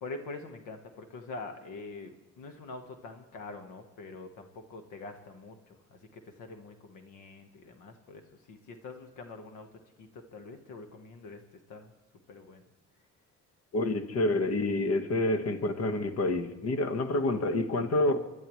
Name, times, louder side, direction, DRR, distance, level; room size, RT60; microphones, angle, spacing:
voice 1, 0.0-9.7 10.0-11.4 11.7-11.9 12.3-12.6, left 3 dB, 90° left, 6 dB, 1.3 m, -45 dB
voice 2, 13.7-18.2, left 2 dB, 55° left, 8 dB, 1.4 m, -28 dB
24.5 x 11.5 x 3.1 m, 1.2 s
cardioid pair, 90°, 30 cm